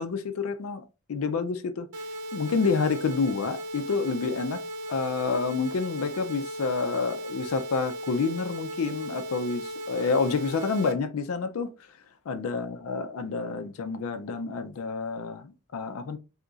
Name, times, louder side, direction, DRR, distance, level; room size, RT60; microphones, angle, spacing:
voice 1, 0.0-4.6 4.9-12.0 12.3-16.2, left 4 dB, 70° left, 0.4 m, -29 dB
sound 1, 1.9-10.9, equal, 80° right, 0.5 m, -37 dB
3.8 x 2.8 x 2.3 m
head